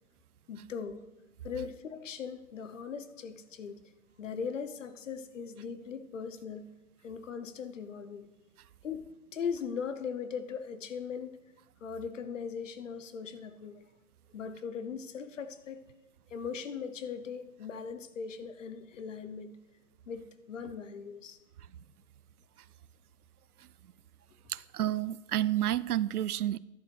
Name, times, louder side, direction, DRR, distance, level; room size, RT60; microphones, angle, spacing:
voice 1, 0.5-1.0 1.4-3.8 4.2-6.7 7.0-8.3 8.8-11.4 11.8-13.8 14.3-15.8 16.3-19.6 20.1-21.4, left 6 dB, 55° left, 1.0 m, -39 dB
voice 2, 24.5-26.6, right 12 dB, 85° right, 0.5 m, -30 dB
11.5 x 9.1 x 3.4 m
hypercardioid pair, 160°, 44 cm